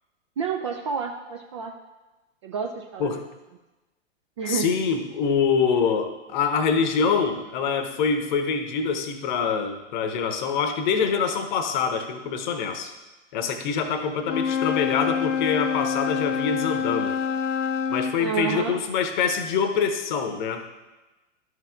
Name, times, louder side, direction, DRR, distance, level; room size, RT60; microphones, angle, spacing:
voice 1, 0.4-1.7 2.4-3.2 4.4-4.7 18.2-18.8, right 6 dB, 25° right, 2 dB, 0.4 m, -29 dB
voice 2, 4.5-12.9 13.3-17.2 17.9-20.6, left 6 dB, 40° left, 8 dB, 0.9 m, -25 dB
Wind instrument woodwind instrument, 14.2-18.2, left 7 dB, 75° left, 0.5 m, -26 dB
12.5 x 6.4 x 2.5 m, 1.1 s
figure-of-eight pair, 110°, 38 cm